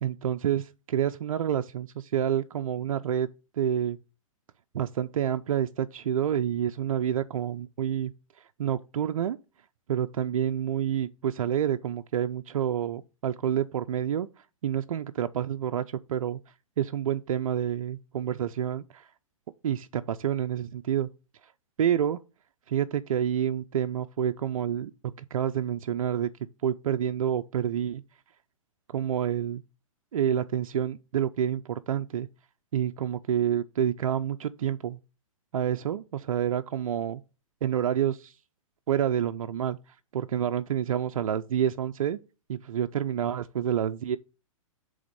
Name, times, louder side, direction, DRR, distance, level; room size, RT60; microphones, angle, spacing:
voice 1, 0.0-3.3 3.6-4.0 4.7-8.1 8.6-9.4 9.9-14.3 14.6-16.4 16.8-19.1 19.6-21.1 21.8-22.2 22.7-24.9 25.3-26.3 26.6-28.0 28.9-29.6 30.1-32.3 32.7-35.0 35.5-37.2 37.6-38.3 38.9-39.8 40.1-42.2 42.5-44.2, right 9 dB, 75° right, 0.5 m, -28 dB
8.5 x 3.6 x 6.7 m
hypercardioid pair, 120°, 18 cm